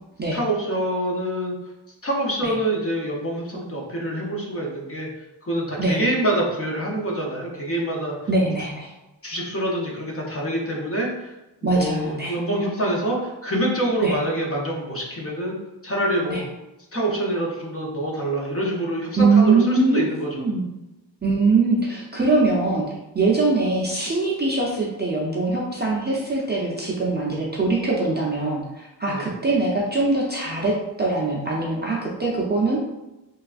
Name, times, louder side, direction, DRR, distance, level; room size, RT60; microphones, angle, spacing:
voice 1, 0.3-1.5 2.0-5.1 5.4-8.2 9.2-15.5 15.8-16.4 16.9-20.5 29.1-29.3, right 1 dB, 30° left, -2 dB, 0.6 m, -26 dB
voice 2, 8.3-8.9 11.6-12.4 14.0-14.1 16.3-16.4 19.2-20.7 21.2-22.9 23.1-33.0, right 3 dB, 25° right, -5 dB, 0.4 m, -22 dB
3.3 x 2.3 x 2.4 m, 1.0 s
wide cardioid pair, 115°, 47 cm